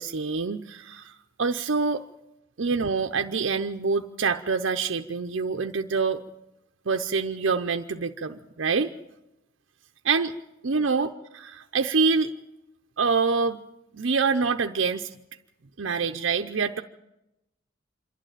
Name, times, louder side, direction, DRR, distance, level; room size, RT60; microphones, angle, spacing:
voice 1, 0.0-2.0 2.6-6.2 6.9-8.9 10.0-10.3 10.6-12.3 13.0-13.6 13.9-15.1 15.8-16.8, right 4 dB, 75° right, 6 dB, 0.7 m, -26 dB
26.5 x 11.5 x 8.9 m, 0.90 s
head